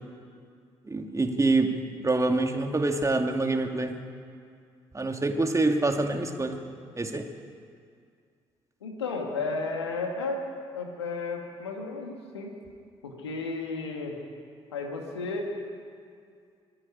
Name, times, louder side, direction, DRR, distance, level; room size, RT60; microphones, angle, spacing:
voice 1, 0.9-1.8 2.0-4.0 4.9-6.6 7.0-7.3, right 2 dB, 25° right, 5 dB, 2.3 m, -26 dB
voice 2, 8.8-10.4 10.7-12.6 13.0-14.2 14.7-15.5, left 3 dB, 85° left, 2 dB, 2.2 m, -33 dB
24.5 x 11.0 x 10.0 m, 2.2 s
figure-of-eight pair, 45°, 14 cm